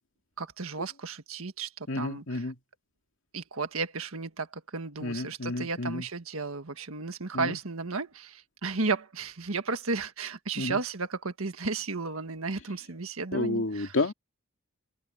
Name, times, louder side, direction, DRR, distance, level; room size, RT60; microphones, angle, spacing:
voice 1, 0.4-2.5 3.3-14.0, right 4 dB, 75° right, 1.6 m, -34 dB
voice 2, 1.9-2.5 5.0-6.0 7.3-7.6 10.6-10.8 13.3-14.1, left 2 dB, 65° left, 2.5 m, -30 dB
head